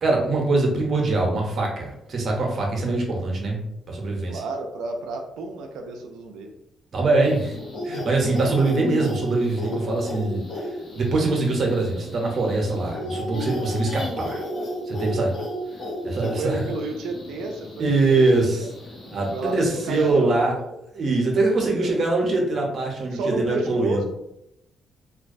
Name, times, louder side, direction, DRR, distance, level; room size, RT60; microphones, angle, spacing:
voice 1, 0.0-3.6 3.9-4.4 6.9-7.6 7.8-14.4 14.8-15.3 16.0-16.6 17.8-18.7 19.1-20.6 20.9-24.0, right 2 dB, 50° right, 0 dB, 0.7 m, -23 dB
voice 2, 4.3-6.5 16.2-18.2 18.6-18.7 19.3-20.8 21.6-22.0 23.1-24.0, right 2 dB, 85° right, 3 dB, 0.3 m, -31 dB
sound 1, 7.2-20.1, equal, 45° left, 0.6 m, -34 dB
2.3 x 2.1 x 2.5 m, 0.84 s
cardioid pair, 90°, 0 cm